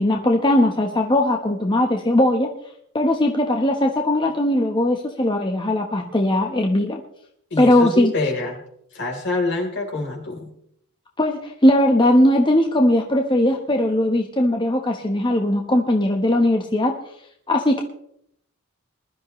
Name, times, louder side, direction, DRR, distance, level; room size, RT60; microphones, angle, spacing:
voice 1, 0.0-2.5 2.9-7.0 7.6-8.1 11.2-16.9 17.5-17.8, left 1 dB, 25° left, 2 dB, 1.1 m, -19 dB
voice 2, 7.5-8.6 8.9-10.5, left 2 dB, 60° left, 1 dB, 3.8 m, -26 dB
21.0 x 12.0 x 3.2 m, 0.72 s
head